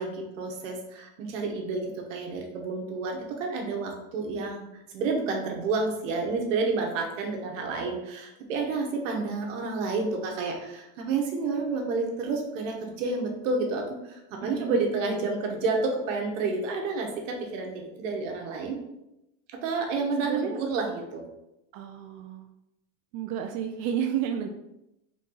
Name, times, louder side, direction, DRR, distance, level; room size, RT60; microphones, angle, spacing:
voice 1, 0.0-4.6 4.9-18.8 19.6-21.2, right 3 dB, 80° right, 2 dB, 1.2 m, -30 dB
voice 2, 14.4-14.8 20.2-20.6 21.7-22.5 23.1-24.5, right 9 dB, 50° right, 4 dB, 0.4 m, -31 dB
3.8 x 2.7 x 3.8 m, 0.87 s
supercardioid pair, 140°, 38 cm